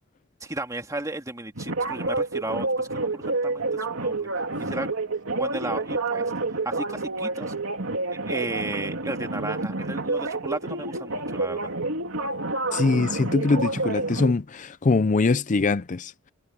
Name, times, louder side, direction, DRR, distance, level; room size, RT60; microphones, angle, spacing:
voice 1, 0.4-4.3 4.6-4.9 5.3-6.3 6.6-7.5 8.1-11.7, right 2 dB, 15° right, 2.3 m, -34 dB
sound 1, 1.5-14.3, right 2 dB, 65° right, 3.5 m, -29 dB
voice 2, 12.7-16.1, left 3 dB, 35° left, 0.5 m, -23 dB
head